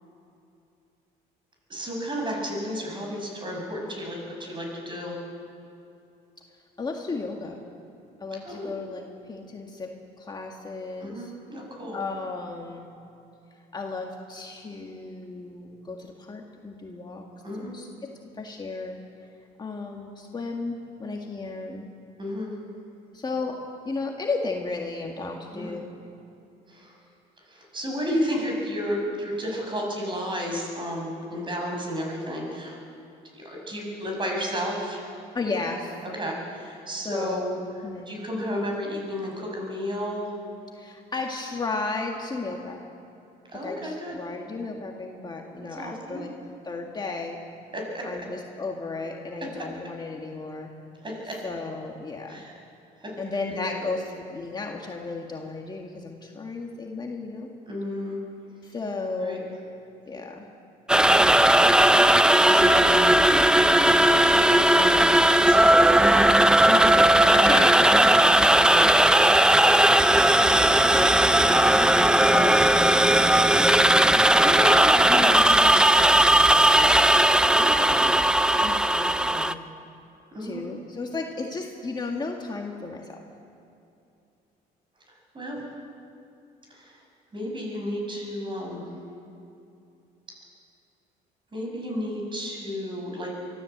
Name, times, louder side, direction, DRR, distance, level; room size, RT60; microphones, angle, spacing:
voice 1, 1.7-5.1 8.4-8.7 11.0-12.0 17.4-17.7 22.2-22.5 25.5-25.7 26.7-27.0 27.5-32.8 33.3-35.1 36.1-40.3 43.5-44.2 45.8-46.2 47.7-48.1 51.0-51.4 52.3-52.6 53.0-53.1 53.5-53.9 57.7-58.2 59.2-59.4 62.4-63.2 63.6-63.9 64.2-66.7 67.3-67.6 68.7-69.1 77.2-78.0 80.3-80.6 85.1-85.6 86.7-87.0 87.3-88.9 91.5-93.3, equal, 30° right, 0 dB, 6.5 m, -32 dB
voice 2, 6.8-7.6 8.2-9.9 10.2-11.3 11.9-12.9 13.7-17.2 17.6-17.9 18.3-19.0 19.6-21.9 23.1-25.9 35.3-36.0 37.0-37.4 37.8-38.1 40.7-42.8 43.6-46.3 46.6-47.4 48.0-50.7 51.4-52.4 53.2-57.5 58.6-59.5 60.1-60.5 66.7-68.7 70.5-72.1 72.3-77.0 77.7-78.2 78.6-79.6 80.4-83.2, left 3 dB, 25° left, 1 dB, 1.8 m, -34 dB
sound 1, 60.9-79.5, right 1 dB, 5° right, 0.6 m, -18 dB
24.0 x 14.5 x 7.9 m, 2.7 s
cardioid pair, 110°, 17 cm